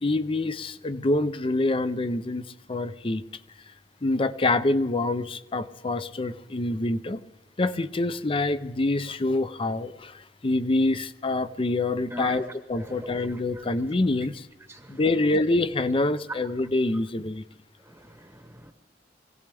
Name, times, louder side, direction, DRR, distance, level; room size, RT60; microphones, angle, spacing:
voice 1, 0.0-2.4 2.7-3.2 4.0-7.2 7.6-14.5 14.9-17.4, left 2 dB, 30° left, 13 dB, 0.6 m, -26 dB
voice 2, 12.8-13.1 13.6-13.7 14.7-15.0 18.0-18.7, equal, 10° right, 4 dB, 1.1 m, -41 dB
24.0 x 17.0 x 3.5 m, 0.97 s
head